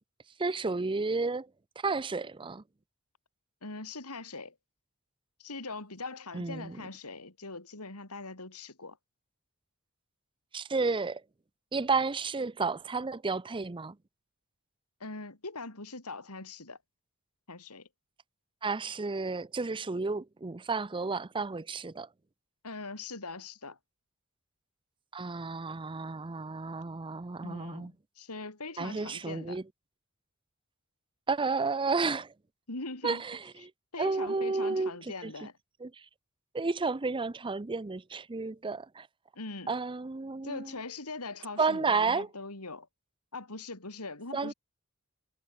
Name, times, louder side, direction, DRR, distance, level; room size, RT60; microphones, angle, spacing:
voice 1, 0.4-1.5 1.8-2.6 6.3-6.8 10.5-11.2 11.7-14.0 18.6-22.1 25.1-27.9 28.8-29.6 31.3-32.3 33.0-33.7 34.0-35.3 35.8-36.1 36.5-39.1 39.7-40.7 41.6-42.3 44.3-44.5, right 4 dB, 20° right, 0.5 m, -32 dB
voice 2, 3.6-4.5 5.4-9.0 15.0-16.8 17.5-17.9 22.6-23.8 27.4-29.6 32.7-33.2 33.9-35.5 39.4-39.7 40.4-42.9 43.3-44.5, left 3 dB, 90° left, 4.1 m, -41 dB
head